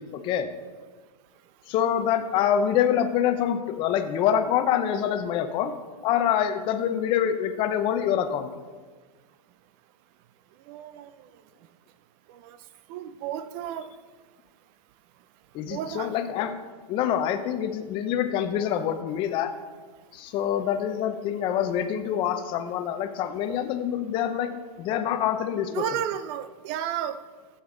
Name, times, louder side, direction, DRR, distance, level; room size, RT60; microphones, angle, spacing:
voice 1, 0.1-0.5 1.7-5.7 6.0-8.5 15.5-16.5 16.9-19.5 20.1-25.8, left 9 dB, 25° left, 9 dB, 0.6 m, -26 dB
voice 2, 10.7-11.1 12.3-12.6 12.9-13.9 15.7-16.2 25.7-27.2, right 10 dB, 25° right, 13 dB, 0.4 m, -32 dB
13.0 x 8.0 x 3.8 m, 1.4 s
hypercardioid pair, 155°, 21 cm